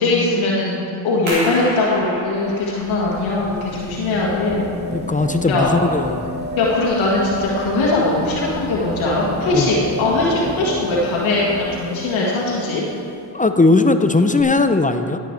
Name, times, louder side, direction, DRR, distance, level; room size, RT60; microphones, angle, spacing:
voice 1, 0.0-4.7 5.5-5.7 6.6-12.8, left 2 dB, 85° left, -5 dB, 1.7 m, -20 dB
sound 1, 1.3-6.6, right 1 dB, 85° right, 3.1 m, -33 dB
sound 2, 2.2-13.2 14.4-14.5, equal, 20° right, 2.4 m, -30 dB
voice 2, 4.9-6.2 9.5-9.7 13.3-15.2, left 3 dB, 15° left, 9 dB, 0.6 m, -17 dB
15.0 x 7.5 x 4.5 m, 2.5 s
supercardioid pair, 50°, 46 cm